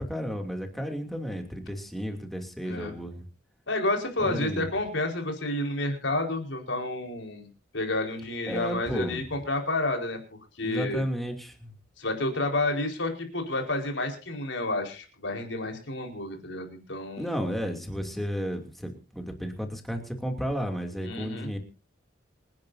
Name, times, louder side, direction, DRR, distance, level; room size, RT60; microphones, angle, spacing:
voice 1, 0.0-3.2 4.2-4.6 8.5-9.2 10.6-11.7 17.2-21.6, equal, ahead, 3 dB, 2.9 m, -33 dB
voice 2, 3.7-7.5 7.7-10.2 10.6-11.0 12.0-17.3 21.0-21.5, left 2 dB, 75° left, 3 dB, 4.8 m, -30 dB
27.5 x 10.5 x 2.8 m, 0.32 s
head